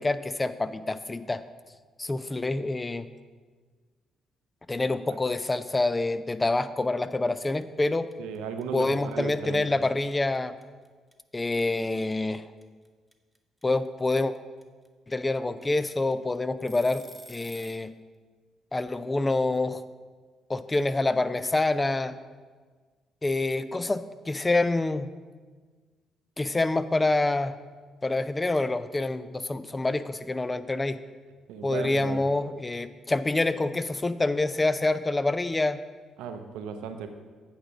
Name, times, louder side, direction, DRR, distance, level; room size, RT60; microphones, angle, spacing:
voice 1, 0.0-1.4 2.0-3.1 4.7-8.1 8.7-10.5 11.3-12.4 13.6-14.3 15.1-17.0 17.3-17.9 18.7-19.8 20.5-22.1 23.2-25.1 26.4-27.5 28.0-31.0 31.6-35.8, left 2 dB, 25° left, 13 dB, 0.4 m, -27 dB
voice 2, 4.8-5.2 8.2-9.8 31.5-32.2 36.2-37.1, right 6 dB, 75° right, 7 dB, 0.6 m, -36 dB
sound 1, 6.6-6.9 7.1-17.9, right 1 dB, 5° right, 0.8 m, -51 dB
8.8 x 5.0 x 5.1 m, 1.5 s
hypercardioid pair, 45°, 0 cm